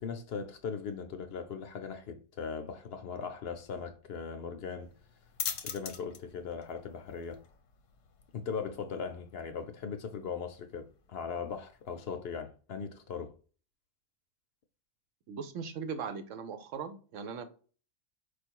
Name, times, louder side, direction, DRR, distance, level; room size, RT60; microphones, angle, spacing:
voice 1, 0.0-4.9 5.6-7.4 8.3-13.3, left 6 dB, 65° left, 0.7 m, -39 dB
sound 1, 4.8-12.1, left 8 dB, 80° left, 1.1 m, -45 dB
voice 2, 15.3-17.4, right 6 dB, 85° right, 1.0 m, -39 dB
4.7 x 2.5 x 4.5 m
omnidirectional pair, 1.3 m